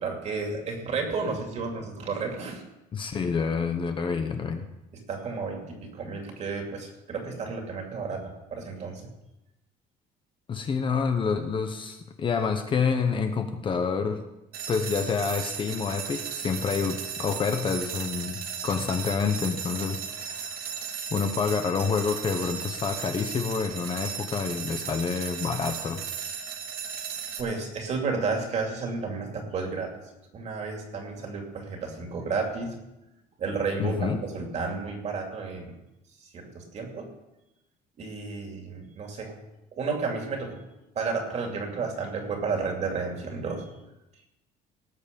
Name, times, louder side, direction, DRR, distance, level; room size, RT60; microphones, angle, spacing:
voice 1, 0.0-2.6 4.9-9.0 27.4-29.9 30.3-32.7 33.4-35.7 36.2-37.1 38.0-39.4 39.7-40.6 40.9-43.7, right 4 dB, 40° right, 2 dB, 2.6 m, -32 dB
voice 2, 2.9-4.7 10.5-14.2 14.7-20.8 21.1-26.0 33.8-34.2, left 5 dB, 30° left, 6 dB, 0.9 m, -28 dB
sound 1, 14.5-27.4, right 7 dB, 65° right, 1.6 m, -36 dB
18.5 x 7.2 x 5.3 m, 0.96 s
cardioid pair, 155°, 17 cm